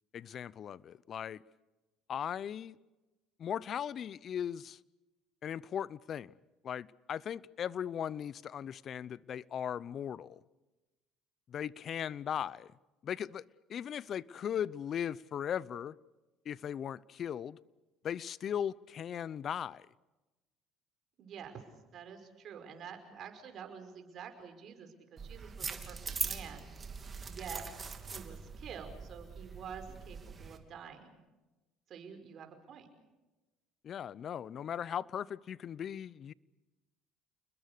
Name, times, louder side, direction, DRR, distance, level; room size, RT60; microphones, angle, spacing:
voice 1, 0.1-1.4 2.1-2.8 3.4-4.8 5.4-6.3 6.6-10.4 11.5-12.7 13.0-13.4 13.7-15.9 16.4-17.6 18.0-19.9 33.8-36.3, left 9 dB, 50° left, 0.7 m, -38 dB
voice 2, 21.2-21.6 21.9-26.0 26.2-26.7 27.2-27.6 28.1-31.2 31.9-32.9, right 7 dB, 55° right, 5.3 m, -48 dB
sound 1, 25.2-30.6, right 5 dB, 30° right, 3.0 m, -42 dB
29.0 x 21.0 x 6.7 m
supercardioid pair, 80°, 0 cm